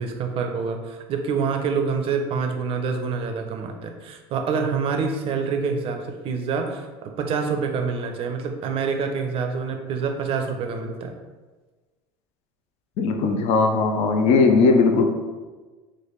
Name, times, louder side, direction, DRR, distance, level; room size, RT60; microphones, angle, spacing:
voice 1, 0.0-11.1, right 5 dB, 45° right, 5 dB, 0.5 m, -26 dB
voice 2, 13.0-15.0, left 4 dB, 55° left, 5 dB, 0.5 m, -18 dB
3.2 x 2.2 x 3.0 m, 1.3 s
hypercardioid pair, 90°, 13 cm